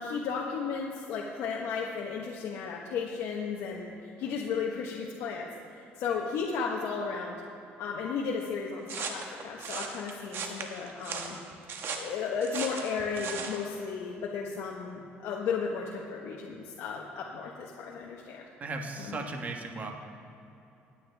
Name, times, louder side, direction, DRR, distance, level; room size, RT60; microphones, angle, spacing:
voice 1, 0.0-5.5 6.0-7.4 7.8-11.4 12.0-18.5 19.0-19.2, left 5 dB, 70° left, -2 dB, 1.1 m, -34 dB
sound 1, 8.9-13.6, right 5 dB, 60° right, 1.3 m, -37 dB
voice 2, 18.6-19.9, right 3 dB, 35° right, 3 dB, 1.2 m, -36 dB
19.0 x 8.9 x 3.4 m, 2.8 s
cardioid pair, 115°, 5 cm